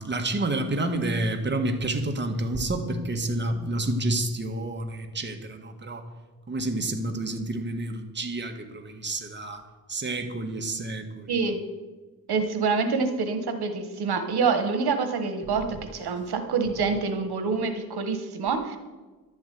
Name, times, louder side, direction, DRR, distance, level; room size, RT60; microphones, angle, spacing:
voice 1, 0.0-6.0 6.5-11.5 15.5-15.6, right 2 dB, 30° right, 4 dB, 1.5 m, -29 dB
voice 2, 11.3-11.6 12.3-18.8, right 4 dB, 85° right, 8 dB, 1.4 m, -26 dB
11.5 x 7.3 x 9.3 m, 1.3 s
wide cardioid pair, 110°, 37 cm